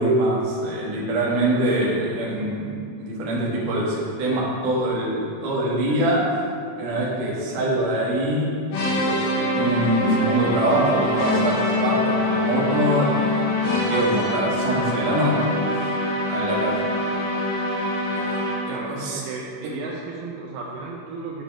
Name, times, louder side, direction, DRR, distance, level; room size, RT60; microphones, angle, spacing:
voice 1, 0.0-6.4 6.8-8.5 8.8-15.4 15.8-15.9 16.3-16.8 18.1-18.4 18.6-19.2, right 1 dB, 65° right, -5 dB, 2.6 m, -24 dB
sound 1, 8.7-18.8, left 1 dB, 90° left, 3.3 m, -24 dB
voice 2, 18.7-21.4, right 4 dB, 85° right, -2 dB, 2.5 m, -34 dB
8.4 x 5.1 x 3.6 m, 2.2 s
omnidirectional pair, 4.4 m